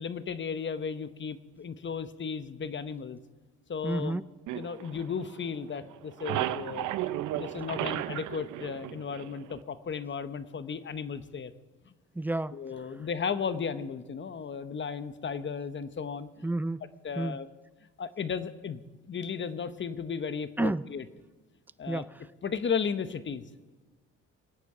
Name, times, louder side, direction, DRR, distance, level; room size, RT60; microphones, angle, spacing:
voice 1, 0.0-3.2 3.7-4.2 4.5-6.9 7.3-11.5 11.9-12.0 12.5-16.4 17.0-17.5 18.0-18.8 19.1-21.0 21.8-22.0 22.4-23.5, left 6 dB, 40° left, 0.9 m, -35 dB
voice 2, 3.8-4.2 12.2-12.6 16.4-16.8 17.2-17.4 20.6-20.8 21.9-22.1, right 2 dB, 5° right, 0.3 m, -30 dB
sound 1, 4.5-5.6 5.9-9.6, right 13 dB, 85° right, 0.7 m, -34 dB
22.5 x 9.2 x 4.9 m
cardioid pair, 90°, 30 cm